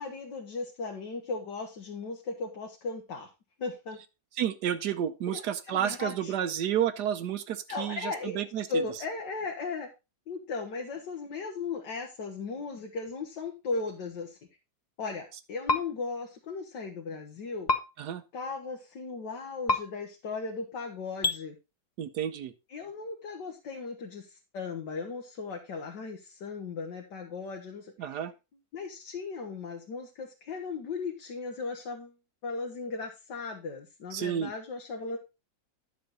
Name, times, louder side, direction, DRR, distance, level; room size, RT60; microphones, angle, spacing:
voice 1, 0.0-3.3 3.6-4.0 5.3-6.3 7.7-9.9 10.3-14.4 15.0-17.7 18.3-21.6 22.7-28.2 28.7-32.2 32.4-35.2, left 4 dB, 65° left, 2 dB, 1.8 m, -37 dB
voice 2, 4.4-9.0 18.0-18.2 22.0-22.5 28.0-28.3 34.1-34.5, right 10 dB, 70° right, 12 dB, 1.1 m, -31 dB
sound 1, 15.7-15.8 17.7-17.8 19.7-19.8 21.2-21.4, left 2 dB, 45° left, 0.5 m, -24 dB
10.5 x 6.4 x 4.0 m, 0.27 s
omnidirectional pair, 2.1 m